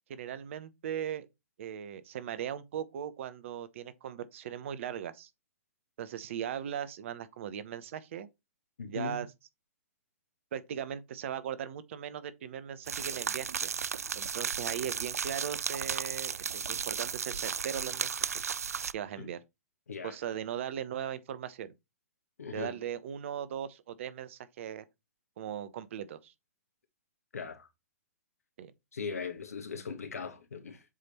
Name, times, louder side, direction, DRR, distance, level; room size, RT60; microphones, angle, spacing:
voice 1, 0.1-1.3 1.6-5.3 6.0-8.3 8.9-9.3 10.5-13.7 14.1-18.2 18.9-19.4 20.0-21.7 22.5-24.8 25.4-26.3 28.6-28.7, right 9 dB, 60° right, 0.9 m, -38 dB
voice 2, 8.8-9.3 19.2-19.3 19.9-20.2 22.4-22.8 27.3-27.7 28.9-30.8, left 5 dB, 85° left, 1.6 m, -39 dB
sound 1, 12.9-18.9, right 7 dB, 85° right, 0.4 m, -34 dB
7.4 x 3.5 x 4.3 m
hypercardioid pair, 125°, 8 cm